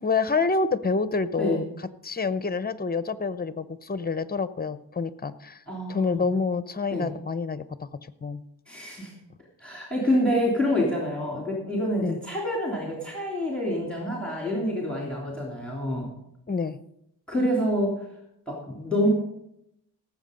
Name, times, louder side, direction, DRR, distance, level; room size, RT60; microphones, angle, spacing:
voice 1, 0.0-1.6 2.0-5.6 5.9-7.9 8.2-8.4 12.0-12.2 16.5-16.8, left 4 dB, 25° left, 14 dB, 0.7 m, -27 dB
voice 2, 5.7-6.2 6.9-7.1 8.7-9.1 9.6-16.1 17.3-18.0 18.5-19.1, equal, 5° left, -2 dB, 3.1 m, -27 dB
17.5 x 7.7 x 5.2 m, 0.80 s
wide cardioid pair, 100°, 39 cm